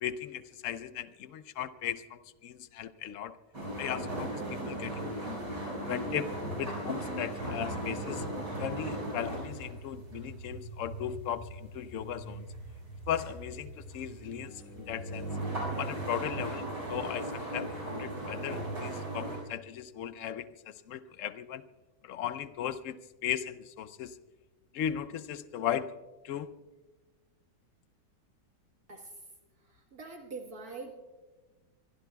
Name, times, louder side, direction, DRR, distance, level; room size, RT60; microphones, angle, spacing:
voice 1, 0.0-3.4 3.8-5.4 5.8-8.3 8.6-12.5 13.1-15.3 15.8-21.6 22.0-24.2 24.7-26.0 26.2-26.6, left 9 dB, 70° left, 14 dB, 0.7 m, -37 dB
sound 1, 3.5-19.4, right 1 dB, 85° right, 6.8 m, -38 dB
voice 2, 28.9-29.2 29.6-31.0, right 3 dB, 55° right, 1 dB, 2.0 m, -44 dB
24.5 x 22.0 x 2.3 m, 1.3 s
omnidirectional pair, 1.9 m